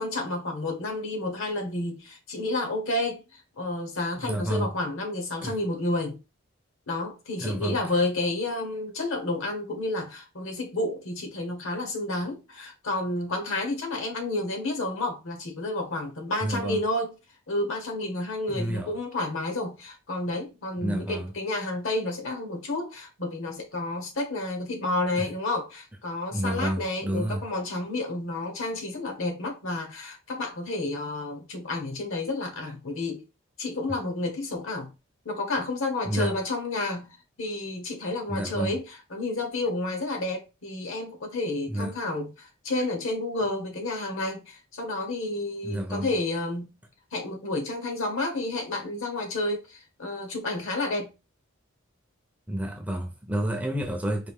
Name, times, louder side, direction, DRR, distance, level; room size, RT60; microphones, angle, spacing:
voice 1, 0.0-6.2 6.9-17.1 17.5-33.2 33.6-34.9 35.2-46.7 47.1-51.1, left 2 dB, 65° left, 1.3 m, -30 dB
voice 2, 4.2-4.7 5.4-5.6 7.4-7.8 16.4-16.8 18.5-19.0 20.8-21.3 25.2-25.3 26.3-27.4 36.0-36.4 38.3-38.7 41.7-41.9 45.6-46.1 52.5-54.3, right 1 dB, 5° right, 0.6 m, -30 dB
4.2 x 2.6 x 3.6 m
head